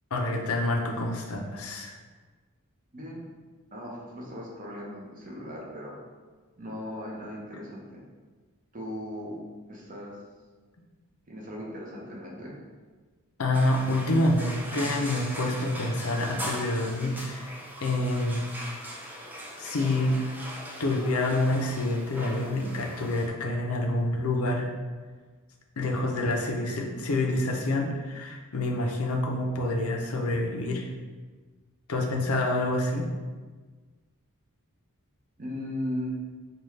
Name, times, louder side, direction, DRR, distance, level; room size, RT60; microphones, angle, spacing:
voice 1, 0.1-2.0 13.4-17.5 17.8-18.4 19.6-20.2 20.8-24.7 25.8-30.9 31.9-33.0, left 1 dB, 70° left, 1 dB, 0.6 m, -27 dB
voice 2, 2.9-3.3 3.7-6.0 6.6-8.0 8.7-9.4 9.7-10.2 11.3-12.6 35.4-36.1, left 1 dB, 35° right, -3 dB, 0.8 m, -37 dB
sound 1, 13.5-23.3, equal, 10° right, 0.4 m, -40 dB
5.1 x 2.4 x 3.2 m, 1.4 s
head